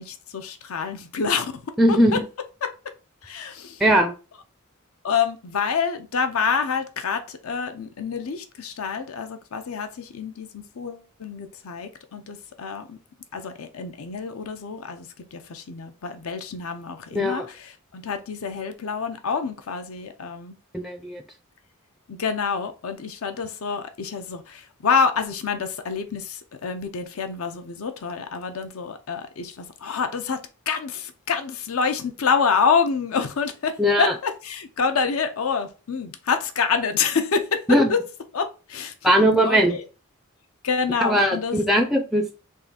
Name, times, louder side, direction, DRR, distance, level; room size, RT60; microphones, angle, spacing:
voice 1, 0.0-1.5 1.9-2.2 2.6-2.7 3.2-3.8 5.0-13.0 13.3-20.6 22.1-30.4 30.7-38.0 38.3-39.9 40.6-41.6, left 5 dB, 75° left, 0.6 m, -27 dB
voice 2, 1.8-2.2 3.8-4.1 17.1-17.5 20.7-21.2 33.8-34.1 37.7-37.9 39.0-39.8 41.0-42.4, equal, ahead, 0.4 m, -19 dB
3.7 x 2.5 x 3.9 m
head